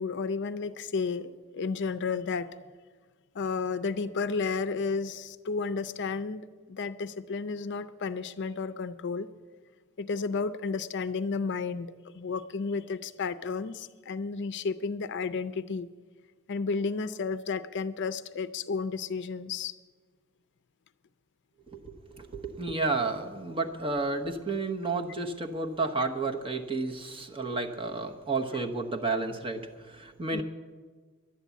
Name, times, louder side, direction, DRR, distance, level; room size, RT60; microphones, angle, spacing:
voice 1, 0.0-2.5 3.3-9.3 10.0-15.9 16.5-19.7 30.3-30.4, left 4 dB, 55° left, 14 dB, 0.5 m, -32 dB
voice 2, 21.7-30.4, right 3 dB, 25° right, 3 dB, 1.0 m, -31 dB
11.5 x 10.5 x 8.3 m, 1.5 s
head